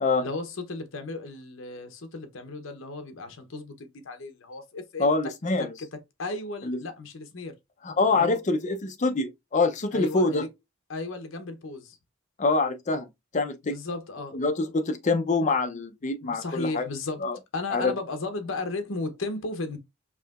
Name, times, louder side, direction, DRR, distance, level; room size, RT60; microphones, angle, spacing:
voice 1, 0.2-5.1 5.8-5.9 6.2-7.6 8.1-8.4 9.9-10.5 10.9-12.0 13.6-14.4 16.2-17.2 17.5-19.8, left 2 dB, 70° left, 0.8 m, -35 dB
voice 2, 5.0-5.7 6.6-6.8 7.8-10.4 12.4-13.1 13.3-13.8 14.3-16.9 17.2-17.4 17.7-17.9, left 3 dB, 35° left, 0.6 m, -25 dB
4.8 x 2.8 x 2.3 m
head